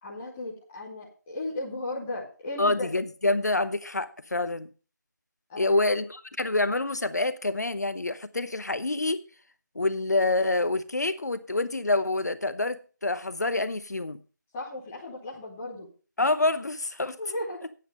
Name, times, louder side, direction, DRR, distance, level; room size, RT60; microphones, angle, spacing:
voice 1, 0.0-2.9 5.5-5.9 14.5-15.9 17.2-17.6, left 2 dB, 5° left, 0.6 m, -36 dB
voice 2, 2.6-4.7 5.6-9.2 9.7-14.2 16.2-17.2, left 2 dB, 60° left, 0.9 m, -27 dB
9.3 x 8.4 x 5.3 m
figure-of-eight pair, 170°, 10 cm